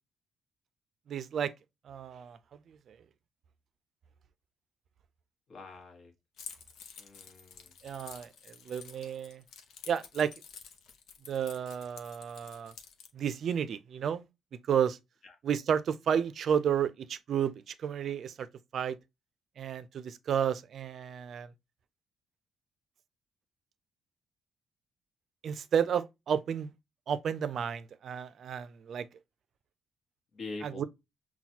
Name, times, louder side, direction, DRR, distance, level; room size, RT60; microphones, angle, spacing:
voice 1, 1.1-1.5 1.8-2.4 2.7-3.0 7.8-9.4 9.9-10.3 11.3-12.7 13.1-14.3 14.7-15.0 15.4-18.5 18.7-19.0 19.6-21.5 25.4-26.7 27.1-29.1 30.6-30.8, right 8 dB, 60° right, 0.4 m, -32 dB
voice 2, 5.5-6.1 7.0-7.7 15.2-15.3 30.3-30.9, left 3 dB, 55° left, 1.3 m, -44 dB
Keys jangling, 6.4-13.1, left 6 dB, 75° left, 0.7 m, -50 dB
5.7 x 2.3 x 2.8 m
cardioid pair, 90°, 0 cm